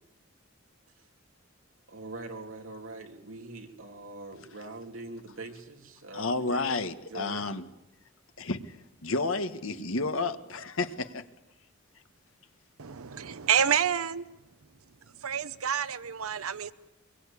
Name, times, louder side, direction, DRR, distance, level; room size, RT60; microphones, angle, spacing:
voice 1, 1.9-6.6 7.1-7.5, right 2 dB, 75° right, 3.0 m, -43 dB
voice 2, 6.1-7.6 8.4-8.6 9.0-11.2, left 3 dB, 75° left, 1.5 m, -31 dB
voice 3, 12.8-14.3 15.2-16.7, right 8 dB, 90° right, 0.8 m, -28 dB
23.5 x 23.0 x 8.5 m
head